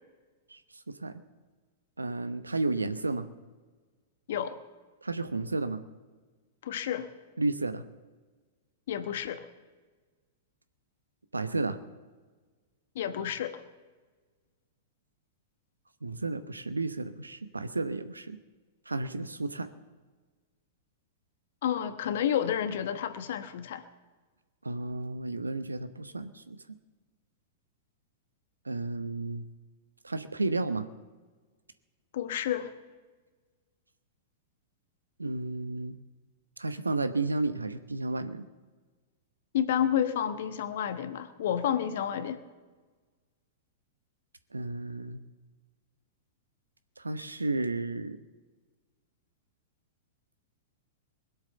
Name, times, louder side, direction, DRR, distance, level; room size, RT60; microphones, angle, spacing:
voice 1, 0.9-1.2 2.0-3.3 5.0-5.8 7.4-7.9 11.3-11.8 16.0-18.4 18.9-19.7 24.6-26.8 28.6-29.5 30.0-30.9 35.2-36.0 36.6-38.5 44.5-45.2 47.0-48.2, right 2 dB, 90° right, 12 dB, 0.9 m, -32 dB
voice 2, 4.3-4.6 6.6-7.1 8.9-9.4 12.9-13.6 21.6-23.8 32.1-32.7 39.5-42.4, left 9 dB, 60° left, 10 dB, 1.2 m, -30 dB
21.0 x 8.0 x 6.8 m, 1.4 s
figure-of-eight pair, 100°, 0 cm